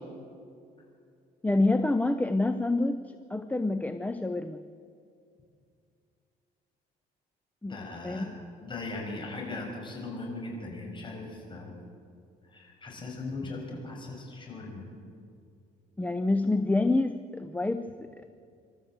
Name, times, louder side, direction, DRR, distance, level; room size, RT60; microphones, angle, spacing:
voice 1, 1.4-3.0 3.3-4.6 7.6-7.8 8.0-8.3 16.0-18.3, left 2 dB, 10° left, 9 dB, 0.6 m, -27 dB
voice 2, 7.7-8.2 8.6-11.7 12.5-14.8, left 2 dB, 30° left, 0 dB, 6.4 m, -39 dB
26.0 x 13.0 x 8.0 m, 2.4 s
cardioid pair, 110°, 17 cm